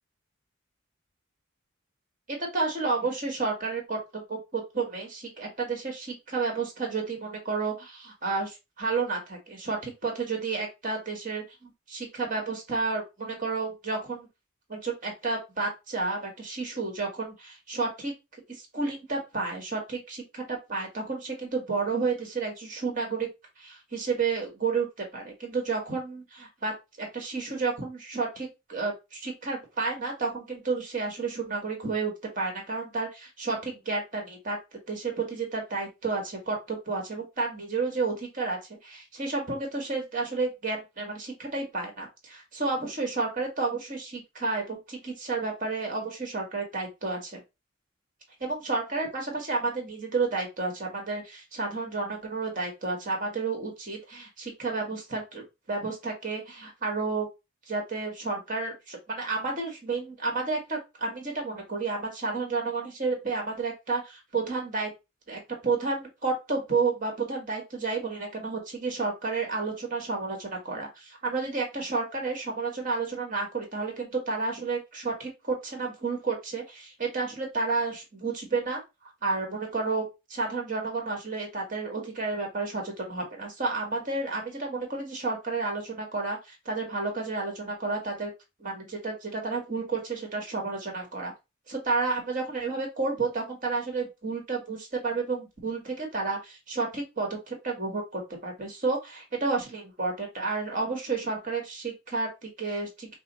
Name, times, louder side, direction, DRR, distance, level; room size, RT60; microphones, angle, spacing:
voice 1, 2.3-14.3 14.7-18.1 18.5-23.3 23.6-24.9 25.1-34.6 34.9-47.4 48.4-57.3 57.7-64.9 65.3-78.8 79.2-80.0 80.3-88.3 88.6-91.3 91.7-103.1, right 4 dB, 40° right, 1 dB, 1.6 m, -31 dB
5.4 x 2.1 x 4.0 m, 0.24 s
head